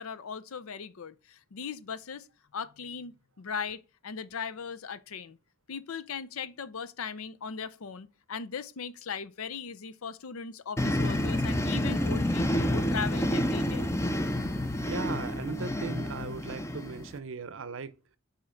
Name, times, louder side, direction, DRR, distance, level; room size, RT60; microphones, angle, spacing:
voice 1, 0.0-2.3 2.5-5.4 5.7-13.9, left 6 dB, 90° left, 0.6 m, -38 dB
sound 1, 10.8-17.2, left 1 dB, 15° left, 0.5 m, -29 dB
voice 2, 14.9-17.9, right 4 dB, 70° right, 0.6 m, -38 dB
5.6 x 4.5 x 5.0 m
head